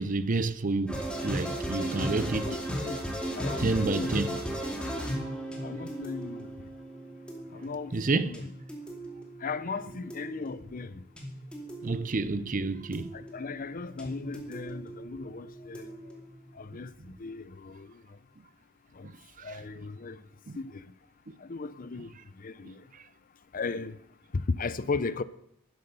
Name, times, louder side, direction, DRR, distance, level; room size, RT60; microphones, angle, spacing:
voice 1, 0.0-2.6 3.6-4.3 7.9-8.3 11.8-13.1 19.0-19.1 19.4-19.6 20.5-20.6 22.9-23.0, right 3 dB, 40° right, 0.6 m, -29 dB
sound 1, 0.9-16.7, right 1 dB, 5° left, 2.5 m, -37 dB
voice 2, 2.3-3.0 3.4-4.2 5.6-6.5 7.5-8.4 9.4-11.0 13.1-16.1 16.5-18.0 18.9-19.1 19.4-20.2 20.5-20.8 21.4-22.9 23.5-24.0 24.3-25.2, left 4 dB, 40° left, 0.6 m, -36 dB
11.5 x 11.0 x 6.8 m
head